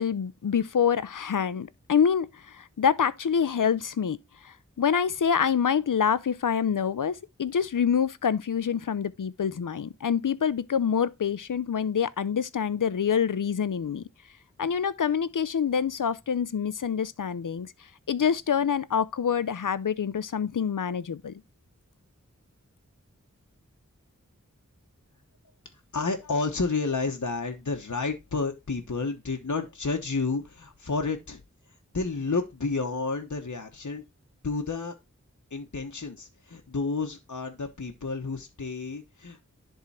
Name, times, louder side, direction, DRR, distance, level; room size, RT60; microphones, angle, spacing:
voice 1, 0.0-4.2 4.4-14.0 14.6-17.7 18.1-21.3, left 7 dB, 90° left, 0.5 m, -26 dB
voice 2, 25.9-31.4 31.9-34.0 34.4-35.0 35.5-39.4, left 4 dB, 70° left, 1.1 m, -30 dB
10.5 x 3.7 x 4.2 m
wide cardioid pair, 45°, 31 cm